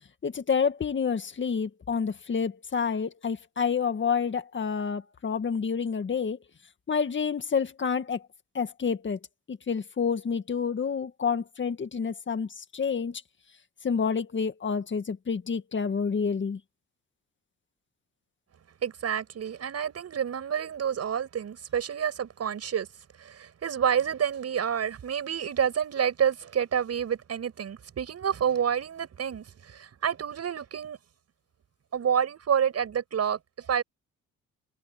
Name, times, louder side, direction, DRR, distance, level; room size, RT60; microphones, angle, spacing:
voice 1, 0.2-6.4 6.9-8.2 8.5-9.2 9.5-13.2 13.8-16.6, left 6 dB, 40° left, 1.9 m, -28 dB
voice 2, 18.8-22.9 23.2-31.0 31.9-33.8, right 8 dB, 55° right, 6.9 m, -28 dB
cardioid pair, 90°, 30 cm